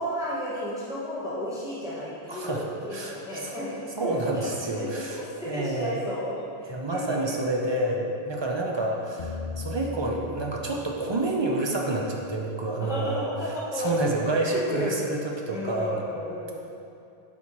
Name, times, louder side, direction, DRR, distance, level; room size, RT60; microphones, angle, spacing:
voice 1, 0.0-4.1 4.4-7.4 8.3-8.7 12.8-13.9 14.3-15.0 15.5-16.6, equal, 5° right, -9 dB, 1.0 m, -33 dB
voice 2, 2.3-2.6 2.9-3.5 4.0-5.2 5.5-6.0 6.7-13.3 13.7-16.0, right 2 dB, 35° right, -1 dB, 0.5 m, -28 dB
sound 1, 9.2-11.4, left 4 dB, 55° left, 0.5 m, -37 dB
8.1 x 4.3 x 3.0 m, 2.5 s
omnidirectional pair, 1.0 m